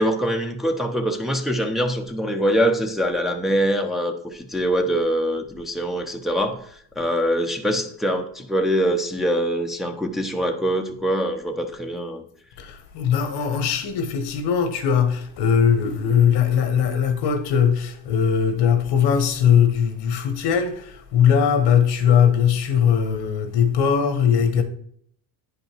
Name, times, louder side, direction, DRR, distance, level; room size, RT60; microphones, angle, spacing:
voice 1, 0.0-12.2, equal, ahead, 0.9 m, -23 dB
voice 2, 12.6-24.6, left 7 dB, 75° left, 1.4 m, -20 dB
9.5 x 5.4 x 4.6 m
cardioid pair, 100°, 42 cm